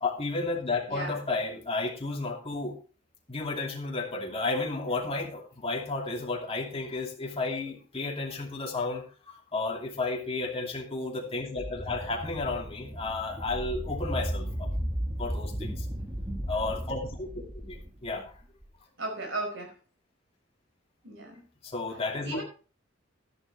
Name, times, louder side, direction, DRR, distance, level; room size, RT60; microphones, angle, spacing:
voice 1, 0.0-2.8 3.3-14.7 15.2-15.9 16.5-18.3 21.6-22.4, left 3 dB, 30° left, 0 dB, 2.6 m, -32 dB
voice 2, 0.9-1.2 19.0-19.7 21.0-21.4 22.2-22.4, right 2 dB, 70° right, 2 dB, 5.1 m, -35 dB
sound 1, 11.6-18.7, equal, 15° right, 1.5 m, -35 dB
12.5 x 10.5 x 3.3 m, 0.36 s
head